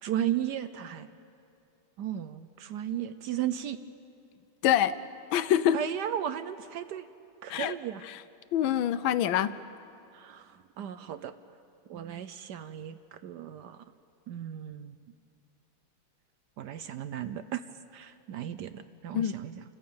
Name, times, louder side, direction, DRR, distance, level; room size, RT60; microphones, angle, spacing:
voice 1, 0.0-1.1 2.0-3.8 5.7-7.1 7.4-8.0 10.1-11.3 11.9-13.8 14.3-14.9 16.6-17.6 17.9-19.6, right 10 dB, 70° right, 12 dB, 1.1 m, -35 dB
voice 2, 4.6-4.9 5.3-5.8 7.5-7.7 8.0-8.2 8.5-9.5 19.1-19.3, left 10 dB, 80° left, 14 dB, 1.5 m, -25 dB
27.5 x 14.5 x 8.6 m, 2.6 s
omnidirectional pair, 2.2 m